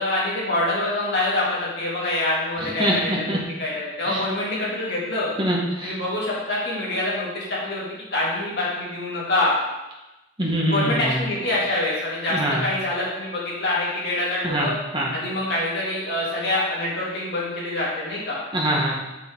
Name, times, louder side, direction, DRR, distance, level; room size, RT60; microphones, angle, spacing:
voice 1, 0.0-5.3 5.8-7.9 8.1-9.6 10.6-14.7 15.1-18.4, left 2 dB, 60° left, -7 dB, 2.7 m, -25 dB
voice 2, 2.6-3.4 4.0-4.2 5.4-5.9 10.4-11.1 12.3-12.7 14.4-15.1 18.5-18.9, right 1 dB, 25° right, -3 dB, 1.6 m, -24 dB
6.7 x 6.3 x 3.9 m, 1.0 s
head